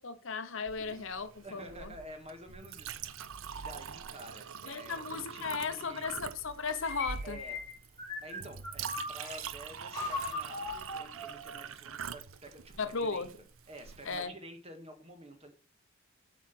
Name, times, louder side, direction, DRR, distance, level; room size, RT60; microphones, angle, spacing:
voice 1, 0.0-1.9 4.7-7.4 12.8-13.3 14.0-14.3, left 5 dB, 60° left, 11 dB, 0.9 m, -36 dB
Chink clink, 0.7-14.2, right 7 dB, 65° right, 0.6 m, -44 dB
voice 2, 1.4-6.1 7.2-7.6 8.2-13.3 13.7-15.5, right 1 dB, 30° right, 5 dB, 1.9 m, -50 dB
sound 1, 6.6-9.4 9.9-11.7, left 2 dB, 15° left, 3.5 m, -39 dB
8.1 x 6.0 x 6.0 m, 0.38 s
head